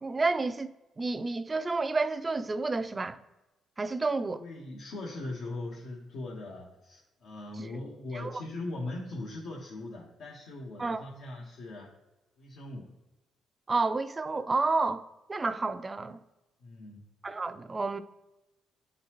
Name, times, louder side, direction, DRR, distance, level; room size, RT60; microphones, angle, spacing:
voice 1, 0.0-3.2 3.8-4.4 7.6-7.7 8.1-8.3 10.8-11.0 13.7-15.0 15.3-16.2 17.2-18.0, right 3 dB, 25° right, 0.4 m, -30 dB
voice 2, 4.4-11.9 12.4-12.9 16.6-17.0, left 2 dB, 80° left, 1.2 m, -40 dB
9.8 x 3.9 x 3.0 m
cardioid pair, 90°, 0 cm